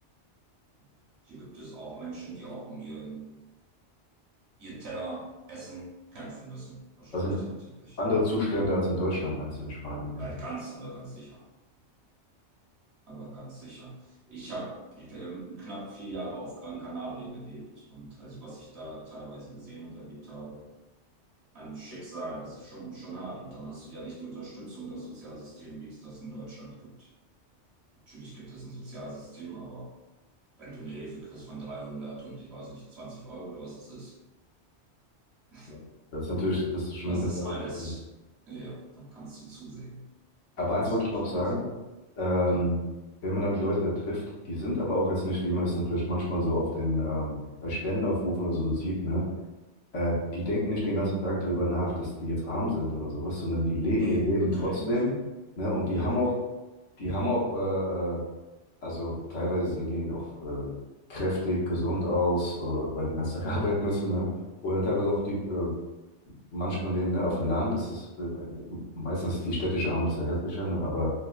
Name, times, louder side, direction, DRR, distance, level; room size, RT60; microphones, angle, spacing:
voice 1, 1.2-3.4 4.6-8.0 8.5-8.6 10.2-11.4 13.1-20.6 21.5-27.1 28.1-29.9 30.6-34.2 35.5-35.7 37.1-38.1 38.5-40.1 40.6-41.5 42.4-42.7 53.8-55.0 55.9-56.3 63.4-63.7, right 2 dB, 65° right, -6 dB, 1.2 m, -41 dB
voice 2, 8.0-10.3 35.7-35.8 36.1-37.9 40.6-41.7 42.1-42.7 43.2-47.4 47.6-49.2 49.9-55.2 55.6-56.3 57.0-58.2 58.8-60.7 61.1-64.3 64.6-65.7 66.5-71.1, left 1 dB, 85° left, -5 dB, 1.4 m, -28 dB
4.1 x 2.3 x 2.4 m, 1.1 s
omnidirectional pair, 1.2 m